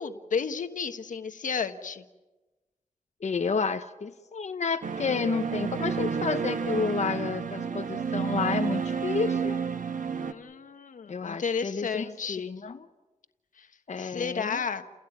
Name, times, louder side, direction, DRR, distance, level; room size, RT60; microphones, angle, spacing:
voice 1, 0.0-2.0 10.2-12.5 13.6-13.7 14.0-14.8, left 6 dB, 90° left, 8 dB, 1.3 m, -32 dB
voice 2, 3.2-9.6 11.1-12.8 13.9-14.6, left 5 dB, 60° left, 7 dB, 1.0 m, -30 dB
sound 1, 4.8-10.3, right 6 dB, 85° right, 1.3 m, -30 dB
29.5 x 17.0 x 9.1 m, 1.1 s
wide cardioid pair, 70°, 13 cm